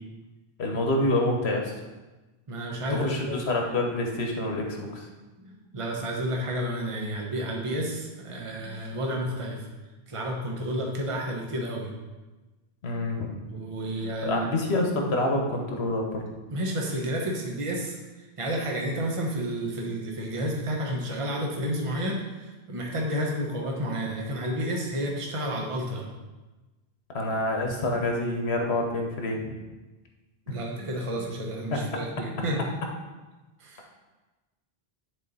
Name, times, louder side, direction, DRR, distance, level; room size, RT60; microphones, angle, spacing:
voice 1, 0.6-1.7 2.9-5.1 12.8-13.3 14.2-16.3 27.1-29.5 31.7-31.8, left 2 dB, 90° left, 2 dB, 1.3 m, -27 dB
voice 2, 2.5-3.4 5.4-9.7 10.1-11.9 13.4-14.6 16.5-26.1 30.5-32.6 33.6-33.8, equal, 35° right, 0 dB, 1.0 m, -31 dB
9.8 x 4.0 x 4.1 m, 1.2 s
omnidirectional pair, 1.0 m